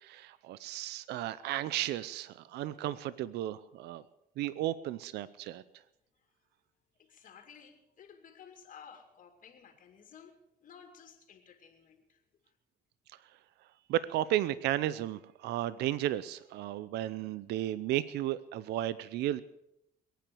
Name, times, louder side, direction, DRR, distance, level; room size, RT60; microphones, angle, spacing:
voice 1, 0.0-4.0 4.4-5.6 13.9-19.4, right 13 dB, 80° right, 17 dB, 0.6 m, -34 dB
voice 2, 7.0-12.2, left 7 dB, 50° left, 4 dB, 2.5 m, -55 dB
22.0 x 9.3 x 6.9 m, 0.84 s
cardioid pair, 110°, 17 cm